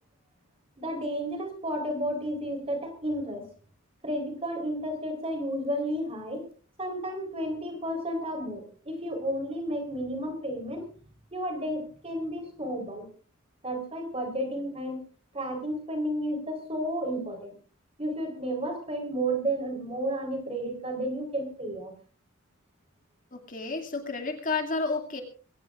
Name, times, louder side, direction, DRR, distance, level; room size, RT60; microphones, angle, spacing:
voice 1, 0.8-3.5 4.0-6.4 6.8-10.8 11.3-13.1 13.6-15.0 15.3-17.5 18.0-21.9, right 1 dB, 25° right, 4 dB, 4.0 m, -32 dB
voice 2, 23.3-25.2, left 3 dB, 40° left, 4 dB, 2.4 m, -31 dB
22.5 x 17.5 x 2.5 m, 0.38 s
head